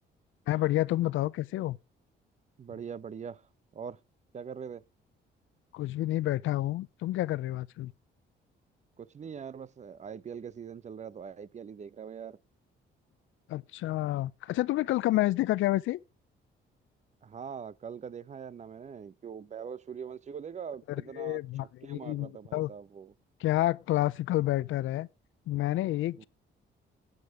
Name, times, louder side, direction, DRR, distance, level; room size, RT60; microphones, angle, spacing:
voice 1, 0.5-1.8 5.7-7.9 13.5-16.0 21.2-22.7 23.4-25.1 25.5-26.3, left 16 dB, 80° left, 0.6 m, -29 dB
voice 2, 2.6-3.4 3.7-4.0 4.3-4.8 9.0-12.4 17.2-21.4 21.8-23.1 26.2-26.3, right 7 dB, 35° right, 0.7 m, -42 dB
12.0 x 9.7 x 4.8 m
cardioid pair, 90°, 20 cm